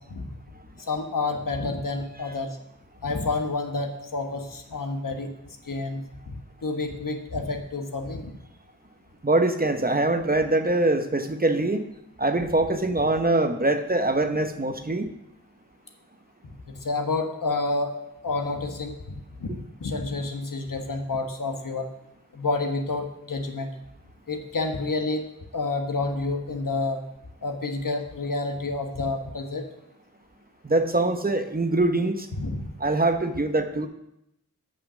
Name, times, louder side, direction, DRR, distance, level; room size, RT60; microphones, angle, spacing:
voice 1, 0.8-2.6 3.0-5.3 5.6-6.3 6.6-8.3 16.7-17.9 18.2-21.9 22.3-23.7 24.3-25.3 25.5-27.0 27.4-29.6 32.4-32.7, left 3 dB, 65° left, 3 dB, 1.3 m, -29 dB
voice 2, 9.2-11.9 12.2-15.1 30.6-32.3 32.8-33.9, right 2 dB, 25° right, 7 dB, 0.9 m, -23 dB
8.3 x 5.9 x 6.2 m, 0.83 s
cardioid pair, 50°, 35 cm